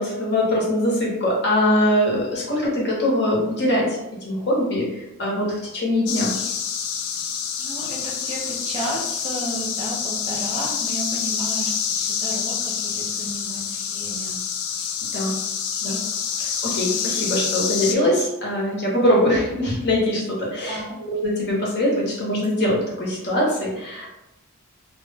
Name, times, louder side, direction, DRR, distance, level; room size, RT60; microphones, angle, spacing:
voice 1, 0.0-6.3 15.1-15.4 15.8-16.0 16.4-24.1, left 1 dB, 50° left, -4 dB, 0.8 m, -22 dB
sound 1, 6.1-17.9, left 7 dB, 70° left, 0.3 m, -27 dB
voice 2, 7.6-14.4 20.6-21.0, right 1 dB, 30° right, -2 dB, 0.4 m, -33 dB
2.0 x 2.0 x 3.2 m, 0.90 s
head